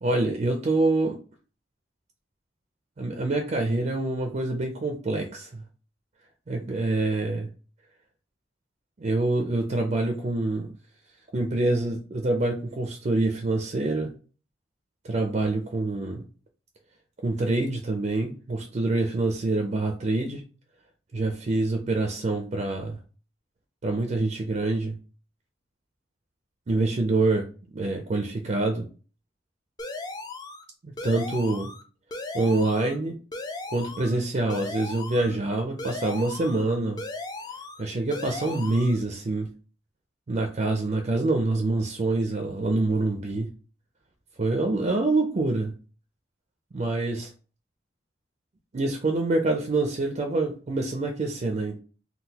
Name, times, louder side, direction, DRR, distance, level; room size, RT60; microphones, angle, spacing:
voice 1, 0.0-1.2 3.0-5.6 6.5-7.5 9.0-10.7 11.3-14.1 15.0-16.2 17.2-20.4 21.1-23.0 23.8-24.9 26.7-28.9 30.8-31.7 32.3-33.2 33.7-37.0 37.8-39.5 40.3-43.5 44.4-45.7 46.7-47.3 48.7-51.8, right 2 dB, 40° right, 4 dB, 0.4 m, -26 dB
sound 1, 29.8-30.6 31.0-31.8 32.1-33.0 33.3-34.2 34.5-35.3 35.8-36.6 37.0-37.8 38.1-39.0, left 2 dB, 20° left, 0.4 m, -37 dB
3.8 x 2.3 x 2.8 m, 0.37 s
head